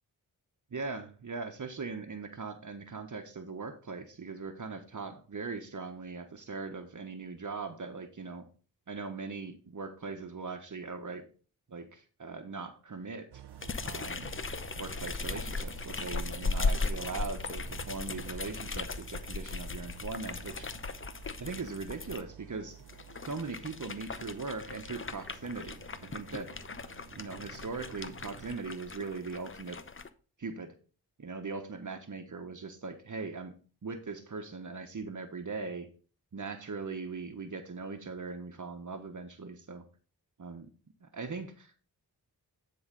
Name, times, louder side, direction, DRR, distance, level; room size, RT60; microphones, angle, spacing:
voice 1, 0.7-8.4 8.9-11.2 11.7-13.4 13.8-14.3 14.7-20.7 21.4-22.8 23.2-26.5 27.1-29.8 30.4-30.7 31.2-33.5 33.8-35.9 36.3-39.8 40.4-40.7 41.0-41.7, right 4 dB, 50° right, 7 dB, 1.2 m, -40 dB
Idling, 13.3-28.6, right 11 dB, 80° right, 0.6 m, -51 dB
sound 1, 13.6-22.2 22.8-30.1, left 3 dB, 30° left, 0.8 m, -37 dB
9.7 x 3.9 x 5.3 m, 0.38 s
cardioid pair, 50°, 39 cm